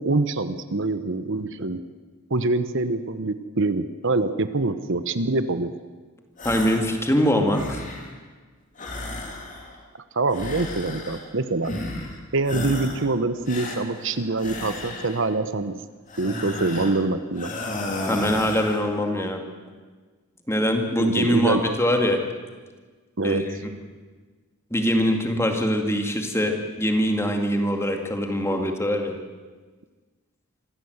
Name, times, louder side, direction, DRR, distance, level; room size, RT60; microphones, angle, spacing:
voice 1, 0.0-1.8 2.3-5.7 10.1-11.7 12.3-15.8 16.2-17.5 21.0-21.6 23.2-23.4, right 3 dB, 55° right, 11 dB, 1.0 m, -25 dB
sound 1, 6.4-7.0 7.3-8.2 8.8-9.8 10.3-11.3 11.6-12.2 12.4-13.1 13.5-15.3 16.1-17.0 17.4-18.9, left 2 dB, 35° left, 3.3 m, -33 dB
voice 2, 6.4-7.8 18.0-19.4 20.5-22.2 23.2-23.6 24.7-29.2, equal, 10° left, 4 dB, 2.2 m, -23 dB
25.5 x 15.5 x 8.0 m, 1.4 s
head